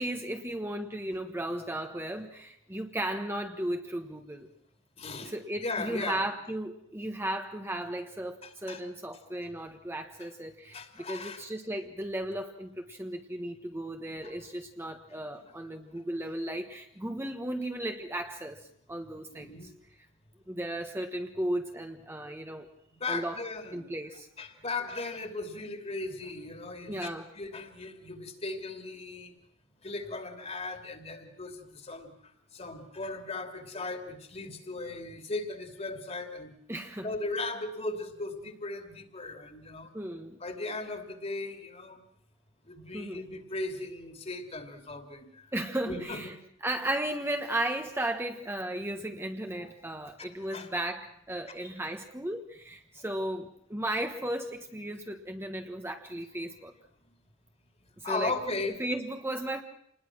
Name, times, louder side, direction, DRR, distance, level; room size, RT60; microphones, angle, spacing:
voice 1, 0.0-4.5 5.2-19.7 20.5-22.7 23.1-23.4 23.7-24.3 26.9-27.3 36.7-37.1 39.9-40.4 42.9-43.2 45.5-46.3 46.6-56.7 58.0-58.3 58.8-59.6, right 1 dB, 15° right, 4 dB, 1.3 m, -35 dB
voice 2, 5.0-5.3 5.6-6.2 8.4-8.9 10.2-10.3 10.7-11.4 14.2-14.4 15.1-15.5 15.9-16.0 19.1-19.7 23.0-23.9 24.4-29.3 29.8-36.5 37.0-39.9 40.4-42.0 42.7-45.5 45.9-46.3 49.6-49.7 50.2-50.7 51.5-51.6 58.0-58.8, left 3 dB, 35° left, 6 dB, 2.8 m, -37 dB
28.0 x 20.5 x 6.1 m, 0.68 s
head